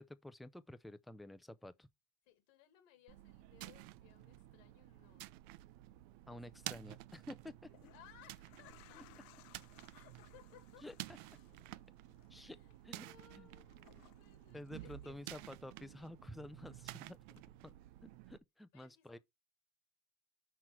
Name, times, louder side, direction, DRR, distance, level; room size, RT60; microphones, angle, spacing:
voice 1, 0.0-1.9 6.3-7.7 10.8-10.9 12.3-12.6 12.8-13.1 13.4-13.5 14.5-17.7 18.3-19.2, left 1 dB, ahead, 0.5 m, -51 dB
voice 2, 2.2-5.3 6.3-6.6 7.9-9.1 9.7-10.9 12.4-15.2 18.7-19.2, left 11 dB, 90° left, 2.0 m, -64 dB
sound 1, 3.1-18.4, right 17 dB, 80° right, 0.5 m, -52 dB
sound 2, 6.5-6.7 7.5-15.6 15.9-16.9 17.4-17.5, left 16 dB, 70° left, 0.7 m, -66 dB
6.0 x 4.4 x 4.7 m
supercardioid pair, 95°, 37 cm